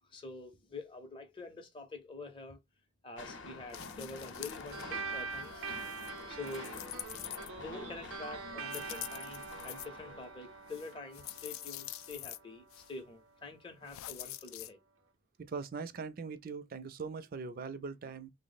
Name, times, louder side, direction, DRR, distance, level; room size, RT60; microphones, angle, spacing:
voice 1, 0.0-2.6 3.0-5.7 6.3-6.7 7.6-14.8, left 3 dB, 25° left, 0.5 m, -46 dB
sound 1, 3.2-11.0, left 3 dB, 60° left, 0.7 m, -49 dB
sound 2, 3.7-4.8 5.2-7.8 8.6-9.9 10.7-12.4 12.7-12.9 13.9-14.7, left 14 dB, 80° left, 0.3 m, -46 dB
sound 3, 4.7-13.5, right 4 dB, 85° right, 0.6 m, -45 dB
voice 2, 15.4-18.3, right 5 dB, 45° right, 0.4 m, -41 dB
3.2 x 2.0 x 4.0 m
head